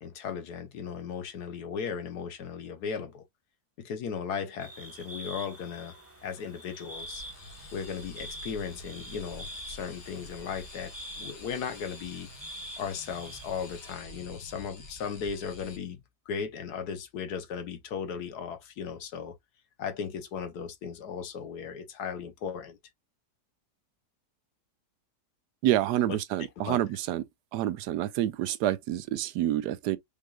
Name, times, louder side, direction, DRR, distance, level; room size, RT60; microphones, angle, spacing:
voice 1, 0.0-3.2 3.8-6.0 6.2-7.2 7.7-12.3 12.8-16.0 16.3-19.3 19.8-22.8 26.1-26.2 26.6-26.8, left 7 dB, 75° left, 1.4 m, -36 dB
sound 1, 4.6-13.9, right 1 dB, 10° right, 1.0 m, -46 dB
sound 2, 6.9-15.8, left 1 dB, 45° left, 1.7 m, -48 dB
voice 2, 25.6-27.2 27.5-30.0, right 13 dB, 80° right, 1.2 m, -28 dB
5.3 x 3.6 x 2.3 m
omnidirectional pair, 1.7 m